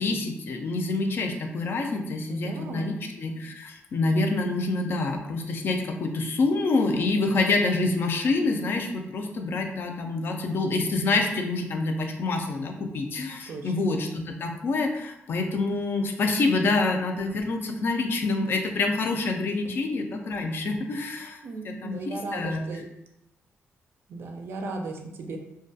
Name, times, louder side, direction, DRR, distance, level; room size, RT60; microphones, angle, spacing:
voice 1, 0.0-21.4 21.8-22.6, left 3 dB, 55° left, 4 dB, 0.3 m, -27 dB
voice 2, 2.3-2.9 13.5-13.9 21.4-22.8 24.1-25.4, right 3 dB, 60° right, 4 dB, 0.3 m, -36 dB
2.3 x 2.1 x 2.6 m, 0.83 s
wide cardioid pair, 160°, 5 cm